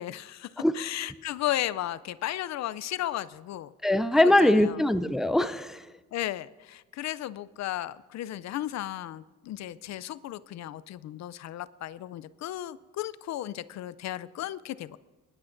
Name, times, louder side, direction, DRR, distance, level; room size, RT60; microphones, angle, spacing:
voice 1, 0.0-0.5 0.7-3.7 4.1-4.8 6.1-15.0, left 13 dB, 65° left, 0.4 m, -35 dB
voice 2, 3.8-5.8, left 1 dB, ahead, 0.4 m, -22 dB
19.5 x 11.0 x 2.6 m
cardioid pair, 90°, 30 cm